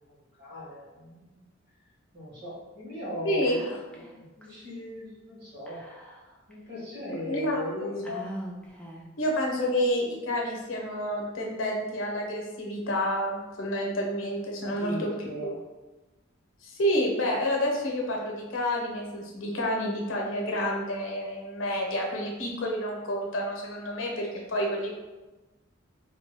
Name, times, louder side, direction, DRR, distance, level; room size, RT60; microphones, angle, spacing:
voice 1, 0.1-1.4 2.1-5.8 6.5-8.1 14.6-15.6, equal, 55° right, -7 dB, 1.4 m, -38 dB
voice 2, 3.2-3.6 7.1-8.2 9.2-15.1 15.4-15.5 16.6-24.9, equal, 75° left, -1 dB, 0.7 m, -29 dB
Whispering, 3.4-4.1 4.4-4.5 5.7-6.5 7.1-7.2 8.0-9.2, right 1 dB, 5° left, 0.3 m, -42 dB
2.9 x 2.2 x 3.3 m, 1.1 s
head